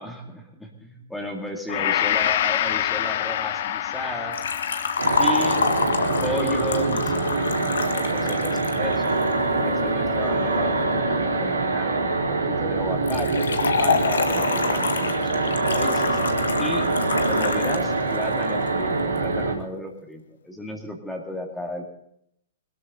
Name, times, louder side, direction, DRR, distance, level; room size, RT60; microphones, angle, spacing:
voice 1, 0.0-4.4 5.2-5.8 6.2-7.5 7.8-9.2 9.6-16.2 16.6-17.0 17.3-21.9, equal, 5° left, 1 dB, 2.4 m, -34 dB
Gong, 1.7-10.0 10.5-10.6, left 11 dB, 50° left, 0.8 m, -29 dB
Liquid, 4.3-9.3 13.1-17.9 18.1-18.2 19.2-19.3, left 5 dB, 70° left, 1.7 m, -27 dB
sound 1, 5.0-19.6, right 3 dB, 75° right, 3.7 m, -24 dB
21.0 x 13.5 x 3.9 m, 0.73 s
figure-of-eight pair, 110°, 0 cm